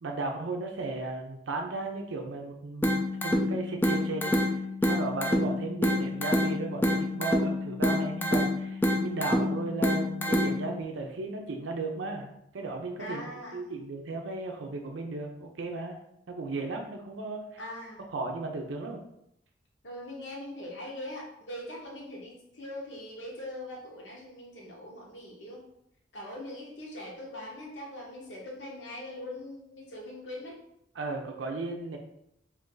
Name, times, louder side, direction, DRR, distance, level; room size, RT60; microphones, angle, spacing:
voice 1, 0.0-16.0 16.3-17.6 18.1-19.0 31.0-32.0, right 3 dB, 90° right, 2 dB, 0.5 m, -35 dB
sound 1, 2.8-10.8, left 1 dB, 10° left, 0.3 m, -27 dB
voice 2, 13.0-13.6 17.6-18.0 19.8-25.6 26.1-30.6, left 1 dB, 75° left, -2 dB, 0.9 m, -41 dB
2.6 x 2.5 x 3.7 m, 0.77 s
head